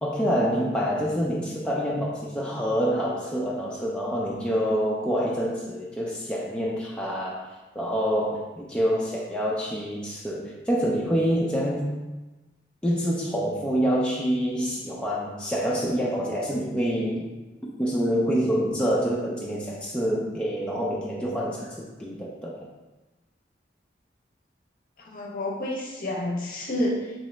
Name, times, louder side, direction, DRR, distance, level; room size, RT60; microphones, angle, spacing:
voice 1, 0.0-7.4 7.8-11.9 12.8-17.3 17.6-22.7, equal, 5° left, -4 dB, 0.4 m, -26 dB
voice 2, 25.0-27.1, left 1 dB, 50° left, -2 dB, 0.7 m, -29 dB
3.7 x 2.9 x 3.1 m, 1.1 s
head